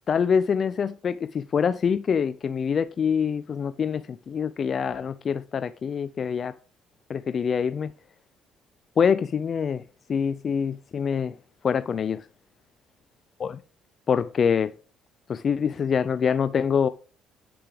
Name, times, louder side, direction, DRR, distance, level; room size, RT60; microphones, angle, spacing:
voice 1, 0.1-6.5 7.1-7.9 9.0-9.8 10.1-11.4 11.6-12.3 13.4-13.6 14.1-14.7 15.3-16.9, left 7 dB, 50° left, 0.4 m, -25 dB
7.6 x 6.7 x 3.4 m
supercardioid pair, 75°, 0 cm